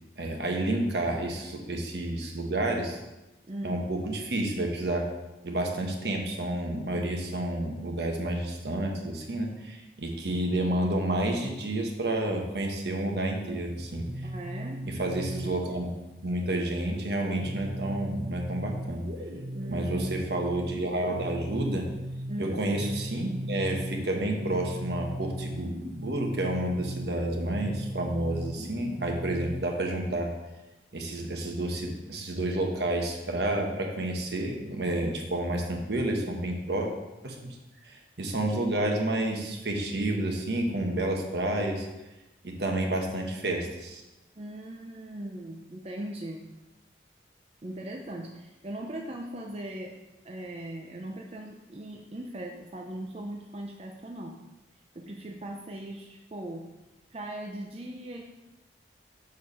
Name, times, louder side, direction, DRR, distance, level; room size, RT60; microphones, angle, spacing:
voice 1, 0.2-3.0 3.6-5.0 5.4-14.1 14.8-15.9 16.2-19.1 19.7-21.9 22.4-25.7 26.0-30.3 30.9-36.9 37.2-37.4 37.8-41.9 42.4-44.0, right 1 dB, 70° right, 2 dB, 1.2 m, -30 dB
voice 2, 3.5-3.9 14.2-14.9 19.5-20.4 22.3-22.7 44.4-46.4 47.6-49.9 50.2-54.4 54.9-56.6 57.1-58.2, right 1 dB, 35° right, 0 dB, 0.5 m, -39 dB
sound 1, 13.8-15.9 16.9-29.8, equal, 50° right, 1.0 m, -37 dB
6.5 x 4.7 x 5.4 m, 1.0 s
head